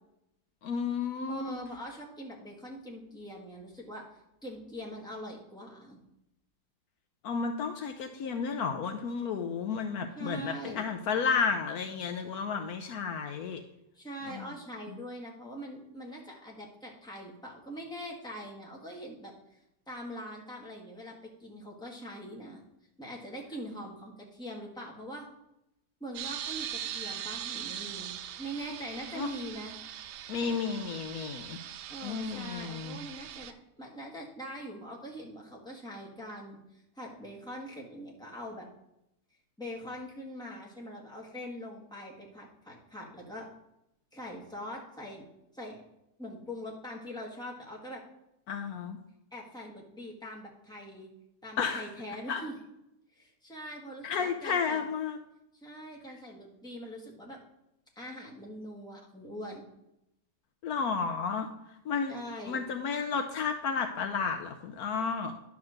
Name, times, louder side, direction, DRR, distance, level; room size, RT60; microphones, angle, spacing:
voice 1, 0.6-1.6 7.2-13.6 14.3-14.5 29.1-29.3 30.3-31.6 32.0-33.0 48.5-49.0 51.6-51.9 52.3-52.4 54.0-55.2 60.6-61.5 61.9-62.1 62.5-65.3, left 5 dB, 70° left, 7 dB, 1.1 m, -32 dB
voice 2, 1.3-4.1 4.4-6.0 10.1-10.8 13.9-19.6 19.9-21.1 21.4-22.6 23.0-25.3 26.0-29.7 31.9-38.7 39.6-43.5 44.1-45.3 45.5-45.8 46.2-48.0 49.3-51.1 51.4-52.6 53.1-54.8 55.5-57.4 57.9-59.6 62.1-62.6, equal, 5° left, -2 dB, 1.5 m, -43 dB
sound 1, 26.2-33.5, right 10 dB, 85° right, 1.2 m, -41 dB
10.5 x 3.6 x 6.5 m, 0.85 s
omnidirectional pair, 1.8 m